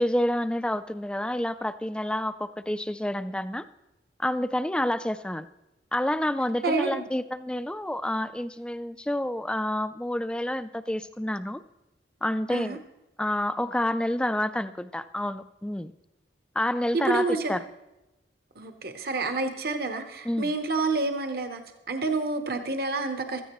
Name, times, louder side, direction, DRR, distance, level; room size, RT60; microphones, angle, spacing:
voice 1, 0.0-3.7 4.2-5.5 5.9-11.6 12.2-12.8 13.2-15.9 16.6-17.6 20.2-20.5, left 1 dB, 5° left, 13 dB, 0.3 m, -28 dB
voice 2, 6.6-7.1 12.5-12.8 16.9-17.5 18.6-21.6 21.9-23.4, right 3 dB, 55° right, 6 dB, 0.9 m, -28 dB
16.0 x 14.0 x 3.0 m, 0.99 s
head